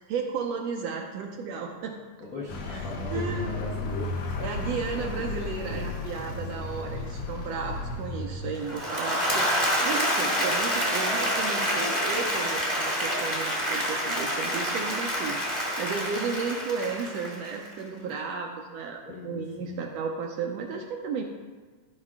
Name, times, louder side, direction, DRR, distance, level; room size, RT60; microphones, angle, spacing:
voice 1, 0.1-2.0 2.7-3.5 4.4-21.2, right 5 dB, 75° right, 2 dB, 1.6 m, -34 dB
voice 2, 2.3-5.4 5.7-5.9 6.3-6.9 8.4-8.6 19.0-19.8, left 2 dB, 55° left, -5 dB, 1.0 m, -39 dB
Vehicle, 2.5-8.9, left 3 dB, 75° left, 2.1 m, -34 dB
Applause / Crowd, 8.6-17.7, equal, 10° left, 0.8 m, -27 dB
13.0 x 5.3 x 3.6 m, 1.4 s
omnidirectional pair, 3.4 m